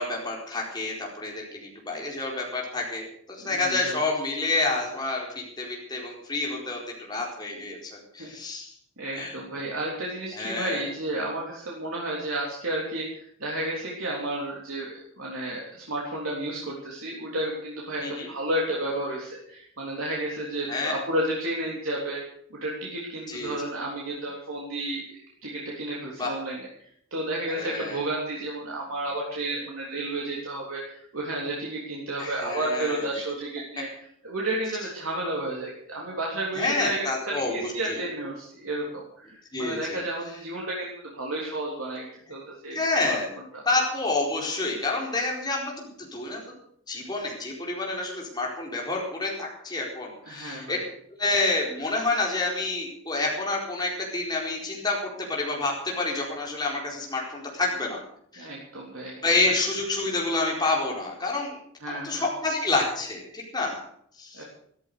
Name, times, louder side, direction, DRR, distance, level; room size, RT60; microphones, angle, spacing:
voice 1, 0.0-8.7 9.1-9.4 10.3-10.9 18.0-18.3 20.7-20.9 23.3-23.5 26.2-26.3 27.5-28.0 32.2-33.2 36.5-38.0 39.5-40.0 42.7-43.3 43.6-46.4 46.9-50.8 51.2-58.0 58.3-58.5 59.2-61.6 61.9-63.8 64.2-64.4, left 2 dB, 20° left, -2 dB, 4.4 m, -28 dB
voice 2, 3.4-4.0 8.2-8.3 9.0-22.2 22.5-25.1 25.4-26.7 27.1-33.9 34.2-43.2 43.5-43.6 50.2-50.8 58.4-59.2 61.8-62.2 64.3-64.4, right 1 dB, 85° right, -3 dB, 3.6 m, -32 dB
14.0 x 13.5 x 6.8 m, 0.66 s
head